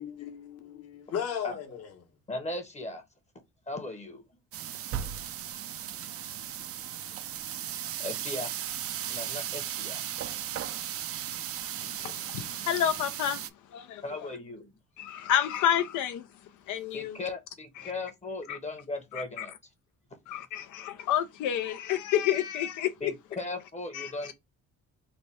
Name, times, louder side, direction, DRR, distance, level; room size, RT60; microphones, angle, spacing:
voice 1, 0.0-2.1, left 8 dB, 55° left, 1.0 m, -36 dB
voice 2, 2.3-3.0 3.7-4.2 5.8-5.9 8.0-8.6 9.0-10.1 14.0-14.7 16.9-19.5 23.0-24.3, left 2 dB, 25° left, 0.8 m, -37 dB
sound 1, 4.5-13.5, right 10 dB, 50° right, 0.4 m, -36 dB
voice 3, 11.8-13.4 13.7-14.0 15.0-16.3 16.7-17.2 17.8-17.9 18.5-18.6 19.1-19.5 20.3-23.1 23.9-24.3, left 10 dB, 80° left, 0.5 m, -30 dB
3.2 x 2.1 x 4.1 m
cardioid pair, 90°, 30 cm